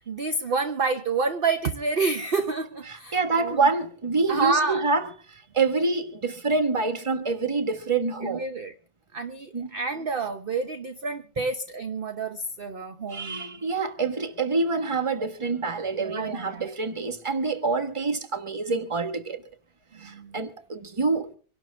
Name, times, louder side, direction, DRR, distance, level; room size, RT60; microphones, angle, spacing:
voice 1, 0.0-3.7 4.3-4.8 8.2-8.7 9.1-13.6 15.2-15.3 15.9-16.7 19.9-20.4, right 4 dB, 40° right, 0.9 m, -29 dB
voice 2, 2.9-8.4 9.5-9.7 13.1-19.4 20.0-21.3, right 3 dB, 20° right, 1.3 m, -26 dB
25.5 x 12.0 x 3.4 m
omnidirectional pair, 1.8 m